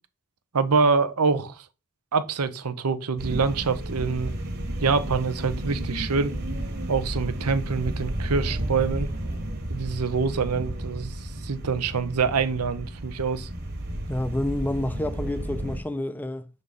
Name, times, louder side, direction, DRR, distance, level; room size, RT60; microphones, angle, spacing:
voice 1, 0.5-1.7 2.1-4.3 4.8-6.3 6.9-9.1 9.7-13.5, right 4 dB, 90° right, 0.8 m, -25 dB
sound 1, 3.2-15.8, right 1 dB, 45° right, 1.4 m, -32 dB
voice 2, 14.1-16.5, left 1 dB, 10° left, 0.5 m, -29 dB
6.2 x 4.0 x 5.2 m
head